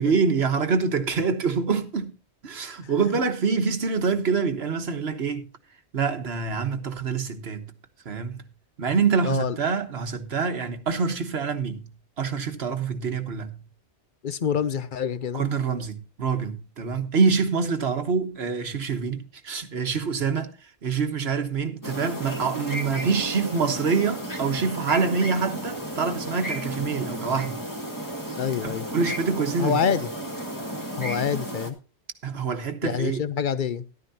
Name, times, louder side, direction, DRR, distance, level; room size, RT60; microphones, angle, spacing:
voice 1, 0.0-2.1 2.4-5.5 5.9-7.7 8.0-8.4 8.8-11.9 12.2-13.6 15.3-27.6 28.6-29.8 32.2-33.2, right 5 dB, 70° right, 1.5 m, -26 dB
voice 2, 9.2-9.6 14.2-15.5 28.4-28.9 29.6-30.1 31.0-31.8 32.8-33.8, left 7 dB, 55° left, 0.8 m, -26 dB
sound 1, 21.8-31.7, right 1 dB, 15° left, 1.7 m, -33 dB
13.5 x 12.0 x 2.8 m
omnidirectional pair, 1.1 m